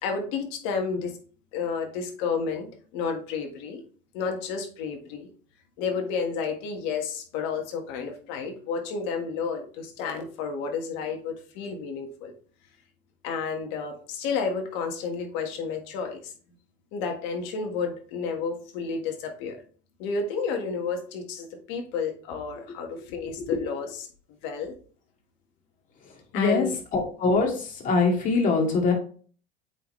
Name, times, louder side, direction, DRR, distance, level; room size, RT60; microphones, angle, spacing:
voice 1, 0.0-1.2 1.5-3.8 4.1-5.3 5.8-12.3 13.2-16.3 16.9-19.6 20.0-24.1 24.4-24.7 26.3-26.8, left 5 dB, 70° left, 4 dB, 1.7 m, -31 dB
voice 2, 26.3-26.6 26.9-27.5 27.8-28.9, left 4 dB, 40° left, 1 dB, 2.3 m, -22 dB
8.2 x 4.2 x 3.2 m, 0.43 s
supercardioid pair, 120°, 20 cm